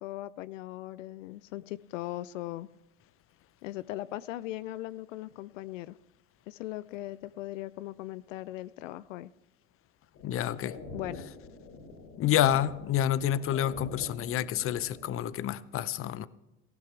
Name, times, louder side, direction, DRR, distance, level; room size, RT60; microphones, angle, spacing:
voice 1, 0.0-2.7 3.6-6.0 6.5-9.3 10.9-11.2, left 16 dB, 80° left, 0.5 m, -39 dB
sound 1, 10.1-15.2, left 3 dB, 65° left, 5.5 m, -46 dB
voice 2, 10.2-10.8 12.2-16.3, left 11 dB, 35° left, 0.7 m, -28 dB
18.5 x 15.0 x 3.3 m
hypercardioid pair, 85°, 38 cm